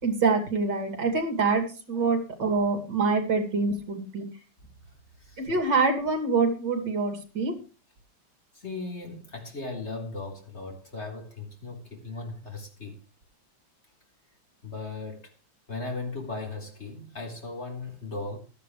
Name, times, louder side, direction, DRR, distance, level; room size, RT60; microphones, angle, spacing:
voice 1, 0.0-4.3 5.4-7.6, right 4 dB, 65° right, 3.4 m, -25 dB
voice 2, 8.5-13.0 14.6-15.3 15.7-18.4, left 3 dB, 35° left, 4.2 m, -37 dB
17.0 x 12.5 x 3.3 m
omnidirectional pair, 2.1 m